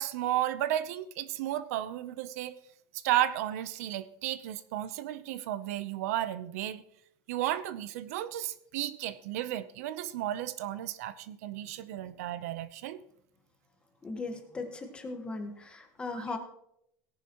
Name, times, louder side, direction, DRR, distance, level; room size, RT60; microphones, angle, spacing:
voice 1, 0.0-2.5 2.9-6.8 7.3-13.0 16.1-16.2, right 13 dB, 80° right, 14 dB, 0.7 m, -33 dB
voice 2, 14.0-16.4, left 3 dB, 15° left, 5 dB, 1.4 m, -38 dB
17.5 x 11.0 x 3.0 m, 0.74 s
cardioid pair, 165°, 8 cm